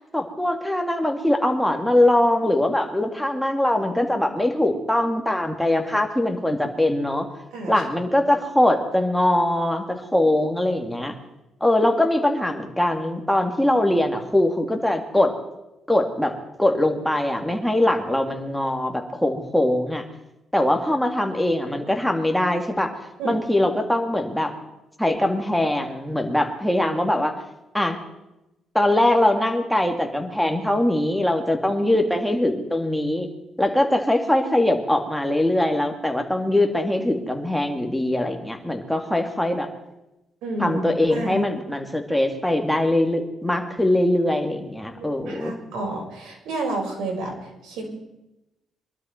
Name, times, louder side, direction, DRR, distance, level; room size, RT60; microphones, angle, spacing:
voice 1, 0.1-7.3 7.7-11.2 11.6-15.3 15.9-16.3 16.6-20.0 20.5-22.9 23.2-24.5 25.0-27.4 27.7-28.0 28.7-33.3 33.6-39.7 40.6-45.5, left 1 dB, ahead, 3 dB, 2.4 m, -22 dB
voice 2, 7.5-7.8 23.2-23.3 40.4-40.8 41.1-41.5 45.0-47.9, right 2 dB, 85° right, 0 dB, 5.3 m, -30 dB
23.0 x 12.5 x 4.5 m, 0.92 s
cardioid pair, 90°, 0 cm